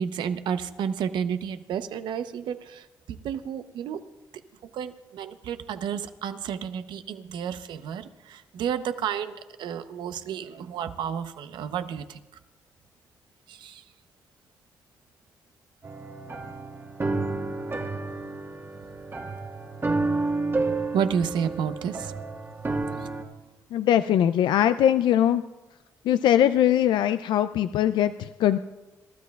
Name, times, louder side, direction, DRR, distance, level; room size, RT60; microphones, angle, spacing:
voice 1, 0.0-2.9 3.2-4.0 4.7-9.3 9.6-12.2 13.5-13.8 20.9-22.1, right 8 dB, 80° right, 10 dB, 0.8 m, -31 dB
sound 1, 15.8-23.2, right 3 dB, 30° right, 1.5 m, -30 dB
voice 2, 23.7-25.4 26.0-28.6, left 11 dB, 80° left, 12 dB, 0.4 m, -21 dB
28.0 x 13.0 x 2.4 m, 1.1 s
supercardioid pair, 65°, 8 cm